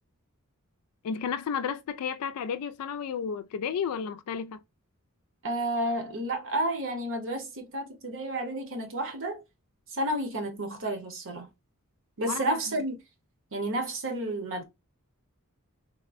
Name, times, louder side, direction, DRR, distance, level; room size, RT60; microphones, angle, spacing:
voice 1, 1.0-4.6 12.3-12.6, left 7 dB, 80° left, 0.3 m, -32 dB
voice 2, 5.4-9.4 9.9-11.5 12.2-13.0 13.5-14.6, right 1 dB, 60° right, 0.9 m, -31 dB
3.6 x 2.1 x 2.4 m
head